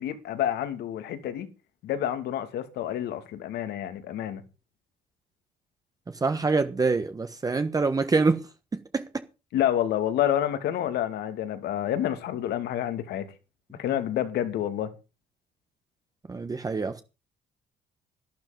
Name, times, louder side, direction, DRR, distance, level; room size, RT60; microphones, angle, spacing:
voice 1, 0.0-1.5 1.8-4.4 9.5-13.3 13.8-14.9, left 11 dB, 75° left, 2.6 m, -28 dB
voice 2, 6.2-8.4 8.7-9.0 16.3-17.0, right 4 dB, 20° right, 1.3 m, -25 dB
12.0 x 12.0 x 5.3 m
cardioid pair, 110°, 17 cm